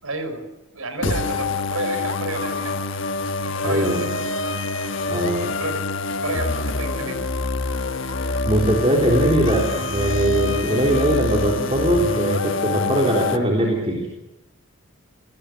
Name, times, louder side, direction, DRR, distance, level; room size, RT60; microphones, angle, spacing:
voice 1, 0.0-2.8 3.5-4.1 5.4-5.8 6.2-7.3, right 2 dB, 80° right, 9 dB, 4.9 m, -31 dB
sound 1, 1.0-13.4, left 3 dB, 60° left, 1.4 m, -26 dB
voice 2, 3.6-4.0 5.1-5.5 8.4-14.1, right 1 dB, 25° right, 0 dB, 3.6 m, -21 dB
28.5 x 19.0 x 7.9 m, 0.95 s
head